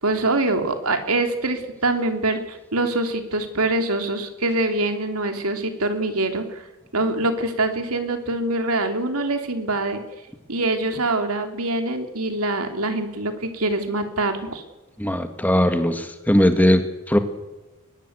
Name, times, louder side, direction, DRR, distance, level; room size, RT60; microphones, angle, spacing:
voice 1, 0.0-6.6 6.9-10.0 10.5-14.6, right 2 dB, 85° right, 6 dB, 3.3 m, -24 dB
voice 2, 15.0-17.2, equal, 10° left, 7 dB, 1.9 m, -19 dB
22.5 x 21.0 x 8.2 m, 1.1 s
head